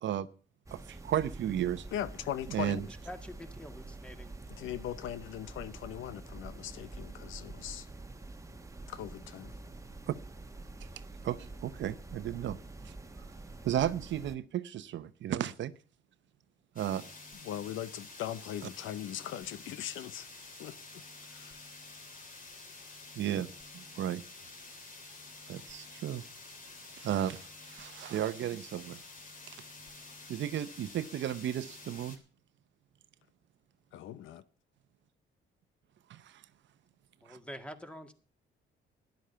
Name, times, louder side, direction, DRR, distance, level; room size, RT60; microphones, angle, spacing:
sound 1, 0.7-14.4, right 2 dB, 15° right, 1.3 m, -47 dB
voice 1, 0.7-1.9 2.5-2.9 10.1-10.2 10.8-10.9 11.2-12.6 12.8-12.9 13.6-15.7 16.8-17.0 23.2-23.5 23.7-24.2 25.5-26.2 27.0-29.0 30.3-32.2 36.1-36.4 37.3-37.4, right 11 dB, 70° right, 0.8 m, -34 dB
voice 2, 1.9-2.9 4.6-7.9 8.9-9.5 17.3-20.3 20.6-21.0 21.3-21.6 33.9-34.4, left 11 dB, 85° left, 0.8 m, -40 dB
voice 3, 2.9-4.3 37.2-38.1, equal, 5° left, 1.8 m, -46 dB
sound 2, 16.8-32.2, left 3 dB, 40° left, 3.2 m, -50 dB
13.0 x 10.5 x 5.7 m
cardioid pair, 90°, 20 cm